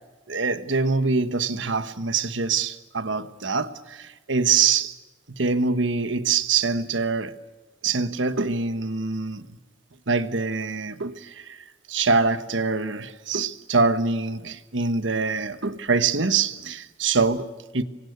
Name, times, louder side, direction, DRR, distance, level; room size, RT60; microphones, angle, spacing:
voice 1, 0.3-4.9 5.3-7.4 7.8-9.5 10.1-17.8, right 4 dB, 70° right, 1.3 m, -24 dB
27.5 x 24.0 x 8.2 m
head